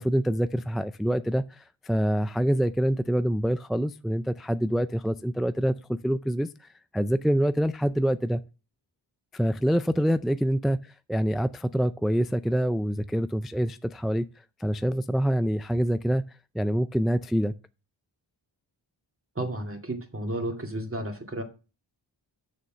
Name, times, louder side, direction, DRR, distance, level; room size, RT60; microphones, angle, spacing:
voice 1, 0.0-6.7 6.9-8.4 9.3-14.2 14.6-16.2 16.5-17.5, equal, ahead, 0.4 m, -26 dB
voice 2, 19.4-21.4, right 1 dB, 25° right, 2.3 m, -32 dB
6.9 x 6.5 x 6.2 m
cardioid pair, 55°, 48 cm